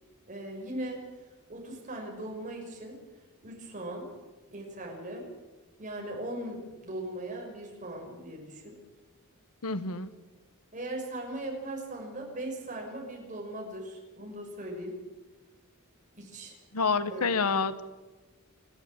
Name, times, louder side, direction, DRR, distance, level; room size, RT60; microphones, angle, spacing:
voice 1, 0.3-1.0 1.5-3.0 3.4-4.1 4.5-5.3 5.8-8.8 10.7-15.0 16.1-16.6 17.1-17.4, right 1 dB, 35° right, 1 dB, 5.9 m, -39 dB
voice 2, 9.6-10.1 16.7-17.8, left 4 dB, 85° left, 13 dB, 1.3 m, -28 dB
29.5 x 11.5 x 8.8 m, 1.2 s
head